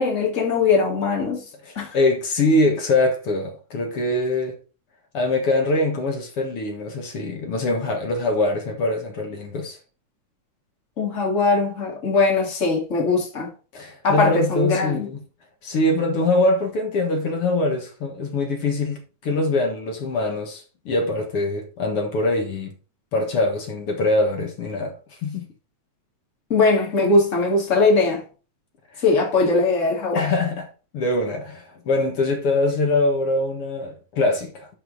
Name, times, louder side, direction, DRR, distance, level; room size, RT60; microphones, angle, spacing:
voice 1, 0.0-1.4 1.8-1.9 11.0-13.5 14.0-15.1 26.5-28.2 29.0-30.3, left 3 dB, 25° left, 2.3 m, -20 dB
voice 2, 1.6-4.6 5.1-9.8 13.7-15.3 15.6-22.7 23.1-24.9 25.2-25.5 30.1-30.7 30.9-34.7, left 2 dB, 55° left, 2.2 m, -23 dB
11.5 x 4.4 x 4.0 m
omnidirectional pair, 3.5 m